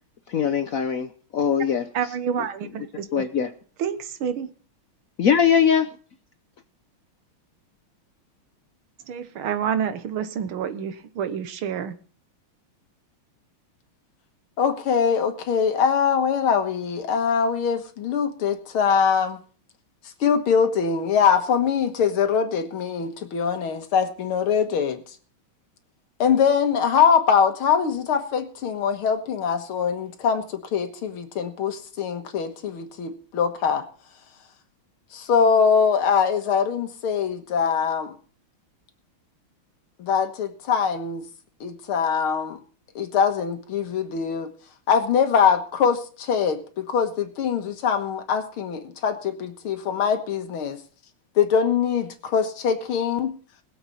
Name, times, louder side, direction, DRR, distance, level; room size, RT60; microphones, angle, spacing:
voice 1, 0.3-1.9 3.1-3.5 5.2-5.9, left 7 dB, 65° left, 9 dB, 0.8 m, -21 dB
voice 2, 1.9-3.3 3.8-4.5 9.1-12.0, right 8 dB, 85° right, 10 dB, 1.9 m, -28 dB
voice 3, 14.6-19.4 20.2-25.0 26.2-33.8 35.1-38.2 40.0-41.2 41.6-42.6 43.0-44.5 44.9-50.8 51.4-53.3, left 6 dB, 85° left, 7 dB, 2.2 m, -23 dB
20.5 x 7.8 x 4.1 m, 0.41 s
omnidirectional pair, 2.3 m